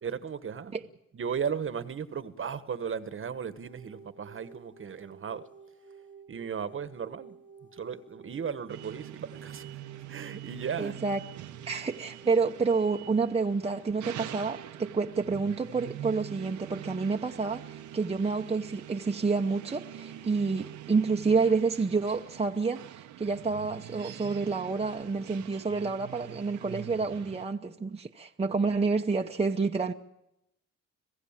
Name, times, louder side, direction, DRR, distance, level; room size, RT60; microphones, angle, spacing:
voice 1, 0.0-0.7 1.1-5.4 6.3-7.3 7.7-9.8 10.1-11.0, right 7 dB, 45° right, 1.3 m, -36 dB
sound 1, 3.6-21.6, right 5 dB, 80° left, 5.0 m, -53 dB
sound 2, 8.7-27.4, right 12 dB, 75° right, 1.0 m, -44 dB
voice 2, 10.8-11.2 11.7-29.9, right 4 dB, 20° right, 0.9 m, -29 dB
26.0 x 16.0 x 7.3 m
cardioid pair, 90°, 30 cm